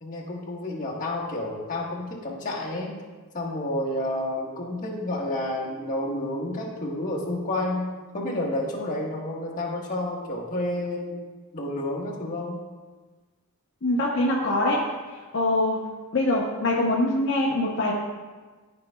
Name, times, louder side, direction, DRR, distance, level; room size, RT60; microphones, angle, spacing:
voice 1, 0.0-3.0 3.3-7.8 8.1-11.2 11.5-12.6, left 1 dB, 35° left, -4 dB, 1.4 m, -30 dB
voice 2, 13.8-14.8 15.1-15.8 16.1-17.9, left 1 dB, 55° left, -4 dB, 0.8 m, -23 dB
12.5 x 5.4 x 2.3 m, 1.3 s
head